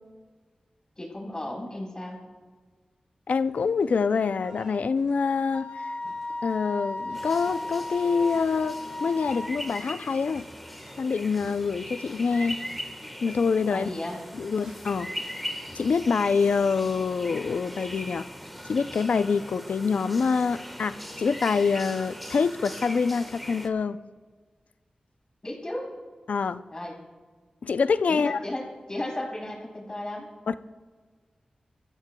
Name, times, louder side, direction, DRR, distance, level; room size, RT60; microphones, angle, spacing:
voice 1, 1.0-2.2 13.7-14.2 25.4-25.9 26.7-27.0 28.1-30.3, left 1 dB, 30° left, -1 dB, 3.9 m, -34 dB
voice 2, 3.3-5.7 6.4-10.5 11.0-12.6 13.2-13.9 14.4-15.1 15.8-18.3 18.7-24.0 26.3-26.6 27.6-28.4 30.5-30.6, left 5 dB, 80° left, 13 dB, 0.4 m, -25 dB
Crowd, 3.3-21.1, equal, 30° right, 4.1 m, -56 dB
Wind instrument woodwind instrument, 5.5-9.5, left 2 dB, 55° left, 1.7 m, -35 dB
birds with wind through trees, 7.1-23.7, equal, ahead, 1.4 m, -40 dB
26.5 x 14.5 x 2.3 m, 1.5 s
wide cardioid pair, 65°, 2 cm